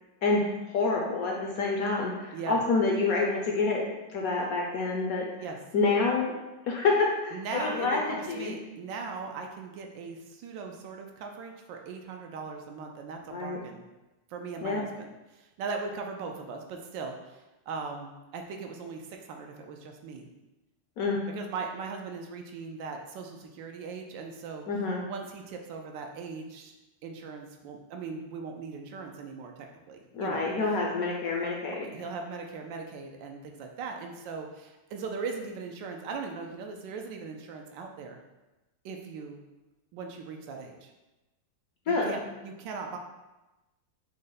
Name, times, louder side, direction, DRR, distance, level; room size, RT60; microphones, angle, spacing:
voice 1, 0.2-5.3 5.7-6.3 6.7-8.6 13.3-13.6 14.6-14.8 21.0-21.2 24.7-25.0 30.1-31.8 41.9-42.2, left 3 dB, 70° left, -1 dB, 0.9 m, -27 dB
voice 2, 2.3-2.6 5.4-5.6 7.3-13.8 14.3-20.3 21.3-24.6 25.0-26.7 27.0-30.5 31.7-38.2 38.8-39.4 39.9-40.9 41.9-43.0, right 4 dB, 85° right, 3 dB, 1.3 m, -39 dB
6.3 x 2.1 x 3.9 m, 1.1 s
omnidirectional pair, 2.0 m